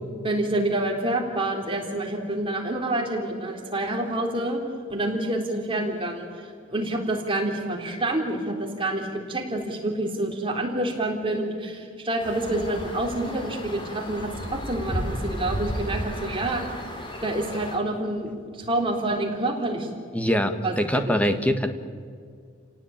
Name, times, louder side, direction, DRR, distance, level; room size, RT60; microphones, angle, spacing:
voice 1, 0.2-4.6 4.9-16.6 17.2-19.9 20.6-20.8 21.1-21.2, right 1 dB, 25° right, 1 dB, 3.7 m, -27 dB
sound 1, 12.2-17.8, equal, 25° left, 3.1 m, -33 dB
voice 2, 20.1-21.7, equal, 5° left, 8 dB, 1.4 m, -23 dB
29.5 x 17.5 x 8.9 m, 2.2 s
head